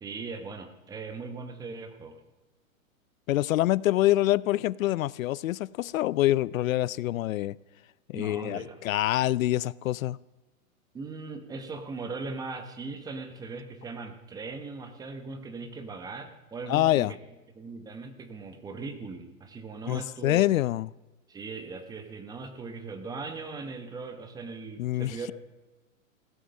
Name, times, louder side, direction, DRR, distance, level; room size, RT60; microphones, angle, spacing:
voice 1, 0.0-2.2 8.1-8.8 10.9-17.2 17.6-20.4 21.3-25.3, right 4 dB, 10° right, 0.9 m, -39 dB
voice 2, 3.3-7.6 8.1-10.2 16.7-17.1 19.9-20.9 24.8-25.3, left 15 dB, 70° left, 0.5 m, -26 dB
16.0 x 12.5 x 6.4 m
hypercardioid pair, 155°, 42 cm